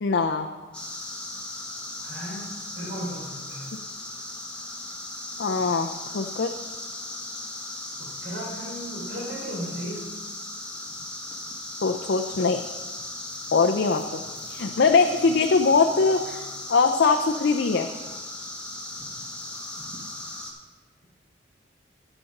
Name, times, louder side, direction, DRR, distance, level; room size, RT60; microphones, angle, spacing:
voice 1, 0.0-0.5 3.7-3.8 5.4-6.5 11.8-12.6 13.5-17.9, left 4 dB, 65° left, 4 dB, 0.5 m, -22 dB
sound 1, 0.7-20.5, left 2 dB, 5° left, 1.3 m, -37 dB
voice 2, 2.0-2.5 2.8-3.7 8.0-10.1, equal, 65° right, -4 dB, 3.6 m, -35 dB
8.9 x 6.4 x 5.9 m, 1.3 s
head